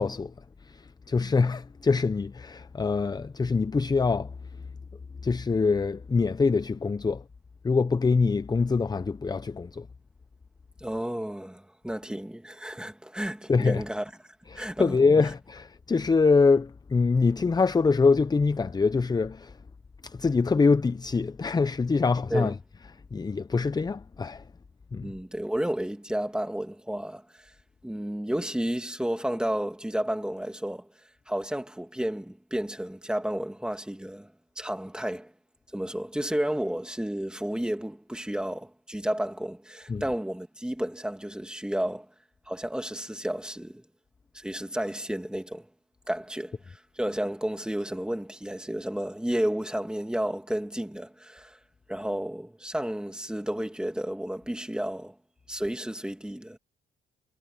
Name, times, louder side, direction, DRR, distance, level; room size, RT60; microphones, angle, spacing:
voice 1, 0.0-4.4 5.2-7.2 7.6-9.9 13.5-13.8 14.5-19.6 20.0-22.6 23.1-24.5 24.9-25.1 39.9-40.0, left 4 dB, 20° left, 0.6 m, -24 dB
voice 2, 10.8-14.0 14.6-15.0 22.3-22.5 25.0-27.5 27.8-30.9 31.3-35.3 35.7-42.1 42.5-43.8 44.3-45.7 46.1-51.6 51.9-55.1 55.5-56.6, right 1 dB, 5° right, 2.5 m, -32 dB
cardioid pair, 90°, 20 cm